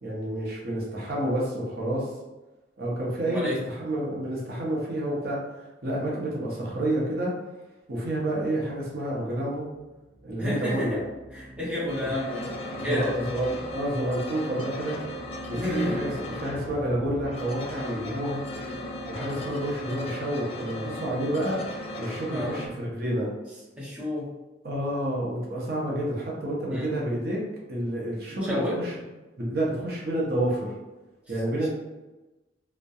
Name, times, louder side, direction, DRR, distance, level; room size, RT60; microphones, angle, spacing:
voice 1, 0.0-2.1 2.8-7.3 7.9-9.7 10.2-11.0 12.0-12.1 12.8-15.0 15.5-18.4 19.1-21.6 22.0-23.3 24.6-27.4 27.7-28.9 29.4-30.7 31.3-31.7, right 1 dB, 55° right, -4 dB, 0.7 m, -29 dB
sound 1, 9.3-22.1, equal, 20° left, 0.9 m, -47 dB
voice 2, 10.4-11.0 11.3-12.5 12.8-13.1 15.5-16.3 18.6-18.8 22.3-22.5 23.8-24.3 26.7-26.9 28.3-28.8 31.6-31.7, left 1 dB, 5° right, -8 dB, 0.6 m, -31 dB
sound 2, 11.9-22.7, left 1 dB, 35° left, 0.3 m, -37 dB
2.6 x 2.1 x 2.3 m, 1.1 s
head